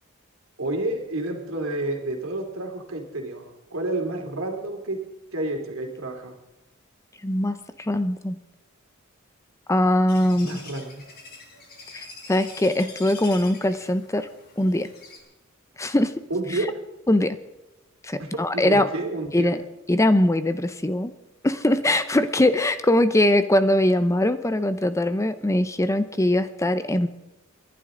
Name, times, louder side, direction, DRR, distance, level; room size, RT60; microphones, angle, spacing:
voice 1, 0.6-5.0 5.3-6.4 10.4-11.0 16.3-16.7 18.2-19.5, right 2 dB, 75° right, 3 dB, 2.8 m, -30 dB
voice 2, 7.2-8.4 9.7-10.6 11.9-14.3 14.6-14.9 15.8-16.1 16.5-16.7 17.1-17.4 18.0-18.9 19.3-19.6 19.9-21.1 21.4-27.1, left 1 dB, 15° left, 11 dB, 0.6 m, -22 dB
sound 1, 10.1-15.2, left 3 dB, 50° left, 3.6 m, -44 dB
28.0 x 11.5 x 3.8 m, 0.98 s
head